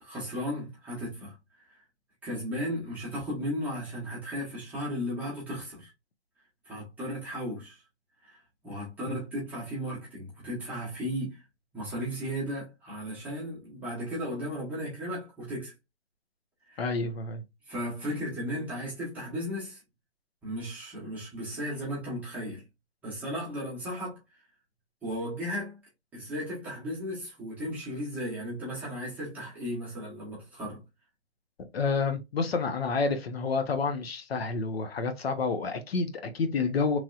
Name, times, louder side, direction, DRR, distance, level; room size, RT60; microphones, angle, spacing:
voice 1, 0.0-1.3 2.2-5.9 6.6-7.8 8.2-8.4 8.6-11.4 11.7-15.7 16.7-16.8 17.7-19.8 20.4-22.6 23.0-24.2 25.0-25.8 26.1-30.8, equal, 5° right, 0.8 m, -35 dB
voice 2, 16.8-17.4 31.7-37.0, left 4 dB, 60° left, 0.7 m, -29 dB
3.1 x 2.6 x 2.3 m
hypercardioid pair, 155°, 35 cm